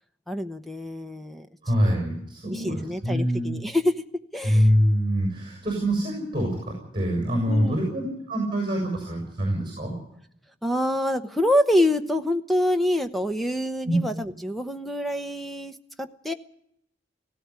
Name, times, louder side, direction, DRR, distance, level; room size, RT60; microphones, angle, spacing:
voice 1, 0.3-1.5 1.9-2.0 2.5-3.9 4.3-4.7 7.5-7.8 10.6-16.3, left 1 dB, ahead, 8 dB, 0.9 m, -26 dB
voice 2, 1.6-3.6 4.4-9.9 13.8-14.0, equal, 25° right, 0 dB, 6.4 m, -25 dB
17.5 x 16.0 x 9.6 m, 0.76 s
head